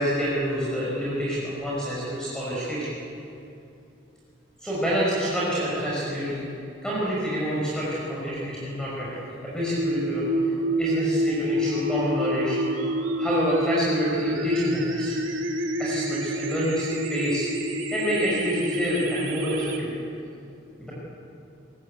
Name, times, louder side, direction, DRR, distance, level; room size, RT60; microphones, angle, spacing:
voice 1, 0.0-3.0 4.6-6.4 6.8-10.3 10.8-12.9 13.2-15.1 15.8-17.5 17.9-19.9 20.8-20.9, equal, 5° left, -8 dB, 6.0 m, -27 dB
sound 1, 9.8-19.8, equal, 85° right, 3.2 m, -27 dB
25.0 x 21.5 x 8.8 m, 2.7 s
head